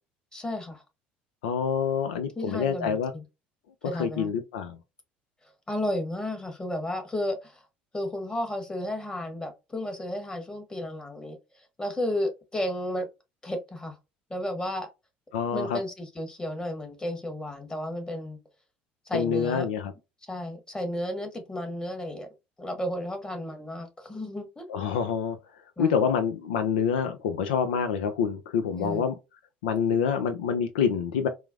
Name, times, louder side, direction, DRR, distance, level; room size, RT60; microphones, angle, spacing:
voice 1, 0.3-0.8 2.4-3.2 3.8-4.3 5.7-7.6 7.9-11.4 11.8-13.1 13.4-14.0 14.3-14.9 15.5-18.4 19.1-19.7 20.3-22.3 22.6-24.7 25.8-25.9 28.7-29.1, left 1 dB, 15° left, 1.4 m, -33 dB
voice 2, 1.4-3.1 3.9-4.8 15.3-15.8 19.1-19.9 24.7-25.4 25.8-29.2 29.6-31.3, left 7 dB, 80° left, 0.4 m, -26 dB
4.5 x 2.0 x 2.4 m
hypercardioid pair, 65°, 5 cm